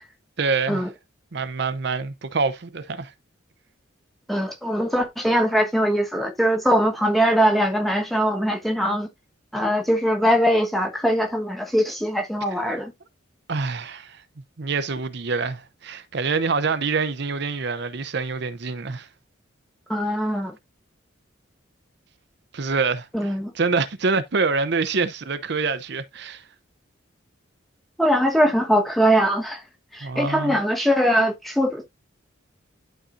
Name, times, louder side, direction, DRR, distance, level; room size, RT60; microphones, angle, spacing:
voice 1, 0.4-0.8 1.3-3.1 12.7-12.8 13.5-14.2 14.6-19.1 22.5-23.1 23.5-26.4 30.0-30.6, right 4 dB, 55° right, 0.7 m, -26 dB
voice 2, 4.3-9.1 9.5-12.9 19.9-20.6 23.1-23.5 28.0-29.6 29.9-31.8, equal, ahead, 1.2 m, -21 dB
11.5 x 4.2 x 2.5 m
head